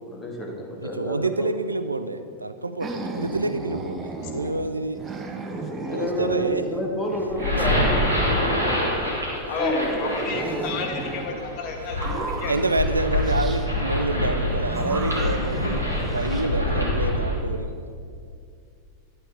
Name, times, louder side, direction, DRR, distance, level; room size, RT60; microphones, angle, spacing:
voice 1, 0.1-1.5 5.4-10.7, equal, 15° left, -1 dB, 1.7 m, -30 dB
voice 2, 0.8-5.0 5.9-6.7 7.6-7.7 12.5-17.9, right 2 dB, 80° right, 11 dB, 0.4 m, -27 dB
sound 1, 2.8-4.7 4.9-6.7 7.1-9.1 9.6-11.3 11.9-13.7 14.6-16.4, right 3 dB, 20° right, 0.8 m, -35 dB
sound 2, 7.2-17.4, left 1 dB, 90° left, 1.9 m, -26 dB
voice 3, 9.5-12.5, left 4 dB, 40° left, 1 dB, 1.4 m, -31 dB
11.5 x 7.8 x 3.5 m, 2.4 s
figure-of-eight pair, 90°, 0 cm